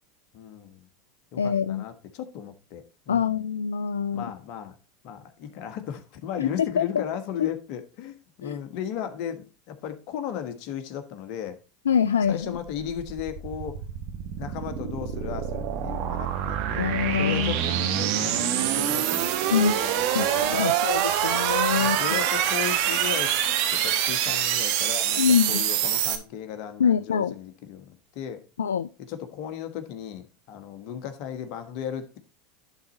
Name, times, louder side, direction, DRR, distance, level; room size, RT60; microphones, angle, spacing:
voice 1, 0.3-0.9 1.3-3.3 4.1-4.8 5.0-11.6 12.3-13.8 14.4-16.9 17.2-20.8 21.7-23.3 23.7-28.4 29.0-32.2, left 9 dB, 55° left, 8 dB, 1.4 m, -36 dB
voice 2, 1.4-1.8 3.1-4.3 6.4-7.0 7.4-7.5 8.4-8.6 11.9-12.6 16.8-17.5 19.5-19.7 20.2-22.0 25.2-25.6 26.8-27.3 28.6-28.9, left 7 dB, 85° left, 14 dB, 0.3 m, -24 dB
sound 1, 12.4-26.2, right 10 dB, 60° right, 1.3 m, -25 dB
11.0 x 4.1 x 4.4 m, 0.32 s
hypercardioid pair, 85°, 0 cm